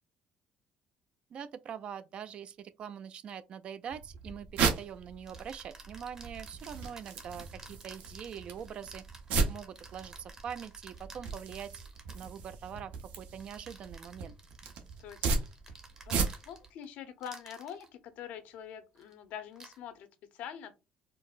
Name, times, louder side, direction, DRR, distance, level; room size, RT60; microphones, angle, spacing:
voice 1, 1.3-9.0 9.5-11.8 12.1-14.4, right 8 dB, 45° right, 0.3 m, -43 dB
sound 1, 3.9-16.7, right 4 dB, 75° right, 0.8 m, -36 dB
sound 2, 4.2-4.4 5.3-12.4 13.4-16.8 17.2-17.9 18.9-19.1 19.5-19.8, right 3 dB, 20° right, 0.7 m, -53 dB
voice 2, 15.0-15.5 16.1-20.1 20.3-20.7, left 9 dB, 75° left, 0.7 m, -45 dB
4.4 x 2.0 x 2.4 m
cardioid pair, 150°, 3 cm